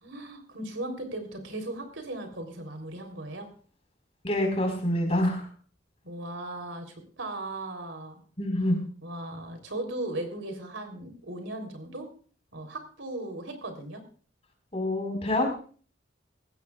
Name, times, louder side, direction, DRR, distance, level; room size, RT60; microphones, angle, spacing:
voice 1, 0.0-3.5 6.0-8.2 9.0-12.1 12.5-14.0, right 2 dB, 85° right, 5 dB, 3.5 m, -37 dB
voice 2, 4.2-5.5 8.4-8.8 14.7-15.5, left 1 dB, 30° left, 3 dB, 4.5 m, -26 dB
20.0 x 16.0 x 2.4 m, 0.41 s
head